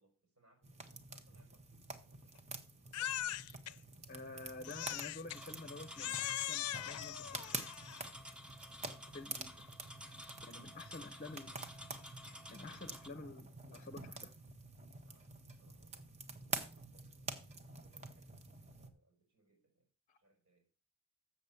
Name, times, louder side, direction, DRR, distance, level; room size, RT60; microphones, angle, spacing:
voice 1, 0.0-4.1 9.2-9.8 10.3-11.2 15.0-19.9 20.2-20.7, right 2 dB, 80° right, 5.3 m, -74 dB
sound 1, 0.6-18.9, right 3 dB, 30° right, 1.0 m, -48 dB
Crying sobbing, 2.9-3.7 4.6-5.4 6.0-8.1, left 13 dB, 90° left, 0.4 m, -40 dB
voice 2, 4.1-7.6 9.1-9.5 10.4-11.5 12.5-14.3 20.1-20.2, left 3 dB, 35° left, 0.7 m, -50 dB
sound 2, 5.3-13.1, equal, 5° right, 0.7 m, -52 dB
7.2 x 7.1 x 6.8 m
head